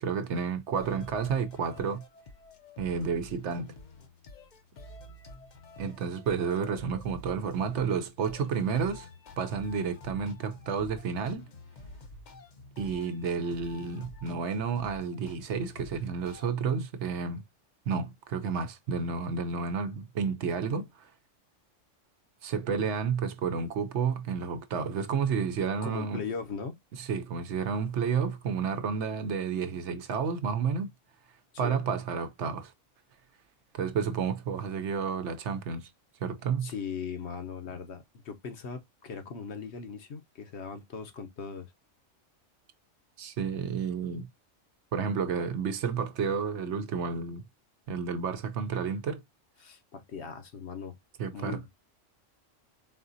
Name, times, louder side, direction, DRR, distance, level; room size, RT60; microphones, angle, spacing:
voice 1, 0.0-2.0 2.8-3.7 5.8-9.1 9.4-11.5 12.8-17.4 17.9-21.1 22.4-26.2 27.0-30.9 31.6-32.7 33.7-35.9 36.2-36.7 43.2-44.3 44.9-47.4 47.9-49.2 51.2-51.7, right 6 dB, 70° right, 0.9 m, -31 dB
sound 1, 0.8-16.5, left 2 dB, 45° left, 0.7 m, -49 dB
voice 2, 25.8-26.8 31.6-31.8 36.6-41.7 49.6-50.9 51.3-51.7, left 5 dB, 65° left, 1.1 m, -39 dB
4.2 x 3.7 x 2.6 m
omnidirectional pair, 1.3 m